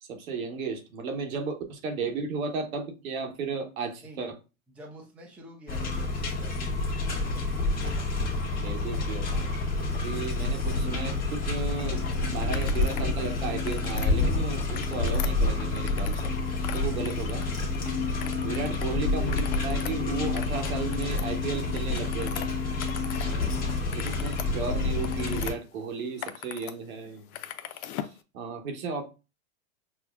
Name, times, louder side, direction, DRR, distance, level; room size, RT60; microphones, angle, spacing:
voice 1, 0.0-4.4 8.5-9.6 9.9-16.3 16.7-17.5 18.4-22.5 23.9-27.2 27.8-29.0, right 4 dB, 75° right, 1.0 m, -34 dB
voice 2, 4.7-7.4 18.2-18.6 23.1-23.5, right 1 dB, 5° right, 0.5 m, -49 dB
sound 1, 5.7-25.5, left 3 dB, 20° left, 1.0 m, -29 dB
sound 2, 6.9-10.1 10.5-13.7 14.0-15.9 16.2-18.0 18.4-19.9 20.2-21.2 23.1-24.2 24.5-24.6, left 5 dB, 45° left, 1.0 m, -41 dB
Slowly using the scrollwheel on an old mouse, 12.5-13.1 13.4-14.1 14.6-16.3 16.6-17.8 18.2-18.9 19.2-23.3 23.6-25.5 26.0-26.7 27.0-28.2, left 11 dB, 85° left, 0.5 m, -40 dB
5.8 x 2.0 x 2.3 m
hypercardioid pair, 130°, 42 cm